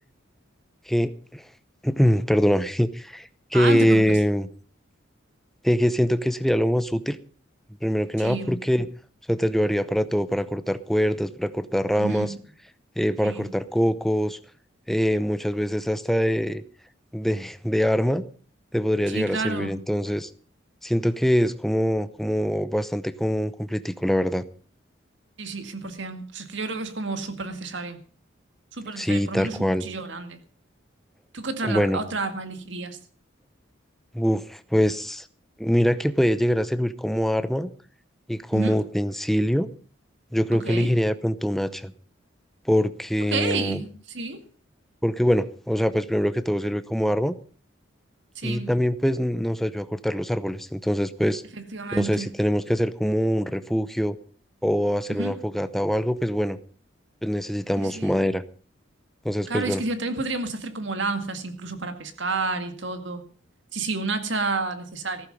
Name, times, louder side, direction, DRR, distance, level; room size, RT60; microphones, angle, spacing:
voice 1, 0.9-1.4 1.8-4.5 5.6-7.2 7.8-8.9 9.3-12.3 13.0-14.4 14.9-16.6 17.1-18.2 18.7-20.3 20.8-24.4 29.0-29.8 31.6-32.0 34.1-35.3 35.6-37.7 38.3-39.7 40.3-41.9 42.7-43.8 45.0-47.3 48.4-51.4 51.9-54.2 54.6-56.6 57.2-58.4 59.2-59.8, equal, ahead, 12 dB, 0.7 m, -24 dB
voice 2, 3.5-4.2 8.2-8.6 11.9-12.4 13.2-13.5 19.1-19.7 25.4-28.0 28.7-30.4 31.3-33.0 38.5-38.8 40.5-40.9 43.3-44.4 48.4-48.7 51.7-52.3 55.1-55.4 57.8-58.2 59.5-63.2 63.7-65.3, right 3 dB, 65° right, 8 dB, 2.0 m, -30 dB
15.0 x 13.5 x 5.3 m, 0.41 s
head